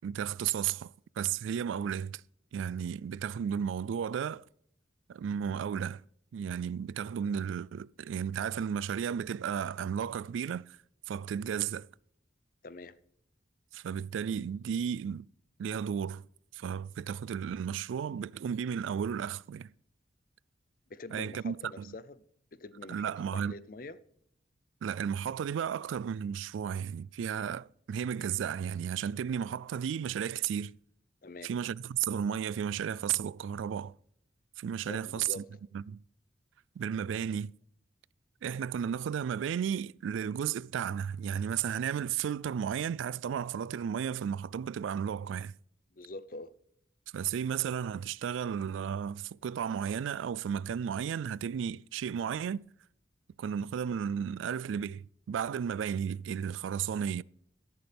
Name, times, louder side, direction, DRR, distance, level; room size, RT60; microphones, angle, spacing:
voice 1, 0.0-2.2 2.5-4.4 5.1-6.0 6.3-10.8 11.1-11.9 13.7-15.3 15.6-16.3 16.5-19.7 21.1-21.9 22.9-23.5 24.8-30.8 31.4-33.9 34.6-35.4 35.7-36.0 36.8-37.5 38.4-45.5 47.1-52.7 53.4-57.2, right 8 dB, 90° right, 0.3 m, -33 dB
voice 2, 12.6-13.0 20.9-22.2 22.5-24.0 31.2-31.5 34.8-35.6 45.9-46.5, left 2 dB, 45° left, 0.6 m, -45 dB
13.0 x 11.0 x 3.4 m
head